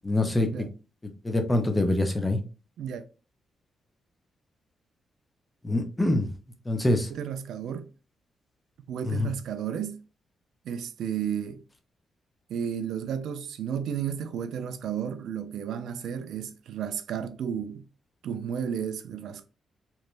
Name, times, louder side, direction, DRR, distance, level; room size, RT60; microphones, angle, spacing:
voice 1, 0.0-0.5 1.2-2.4 5.6-6.3 6.7-7.1 9.0-9.3, left 1 dB, 15° left, 0.5 m, -24 dB
voice 2, 7.1-7.9 8.9-10.0 10.6-11.6 12.5-17.8 18.2-19.4, right 8 dB, 85° right, 0.3 m, -33 dB
3.0 x 2.1 x 2.4 m
cardioid pair, 115°, 0 cm